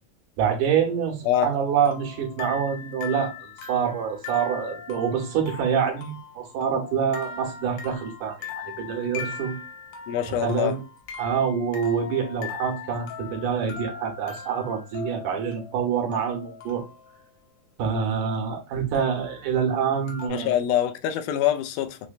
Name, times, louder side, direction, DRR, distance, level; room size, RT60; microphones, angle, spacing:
voice 1, 0.4-3.4 3.7-9.6 10.3-10.8 11.2-16.8 17.8-20.5, right 7 dB, 80° right, 2.5 m, -26 dB
sound 1, 0.8-17.3 18.9-19.5 20.1-20.3, left 7 dB, 70° left, 1.8 m, -40 dB
voice 2, 10.1-10.8 20.3-22.0, left 11 dB, 85° left, 2.1 m, -24 dB
5.9 x 2.2 x 2.4 m
omnidirectional pair, 3.6 m